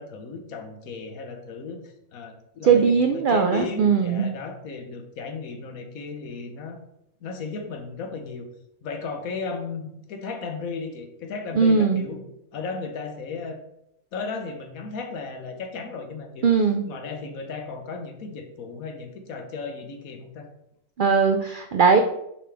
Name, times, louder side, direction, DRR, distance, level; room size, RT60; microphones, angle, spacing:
voice 1, 0.0-6.8 7.2-8.5 8.8-13.6 14.1-16.5 16.9-20.5, left 4 dB, 85° left, 5 dB, 1.4 m, -35 dB
voice 2, 2.6-4.3 11.6-12.0 16.4-16.9 21.0-22.0, right 5 dB, 80° right, 5 dB, 0.4 m, -19 dB
5.6 x 5.0 x 3.4 m, 0.80 s
omnidirectional pair, 1.4 m